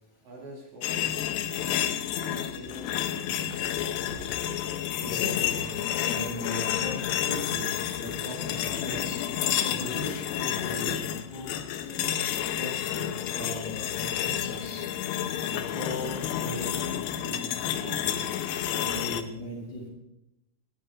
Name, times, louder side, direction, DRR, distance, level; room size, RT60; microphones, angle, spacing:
voice 1, 0.2-1.4 2.2-3.7, right 2 dB, 65° right, -2 dB, 4.5 m, -46 dB
sound 1, 0.8-19.2, left 10 dB, 80° left, 2.5 m, -30 dB
voice 2, 4.6-7.7 8.0-9.2 9.6-11.5 11.8-12.1 12.5-14.9 15.5-16.9 17.2-18.1 18.7-19.9, left 1 dB, 40° left, -4 dB, 7.3 m, -38 dB
20.5 x 13.0 x 2.5 m, 0.85 s
omnidirectional pair, 5.7 m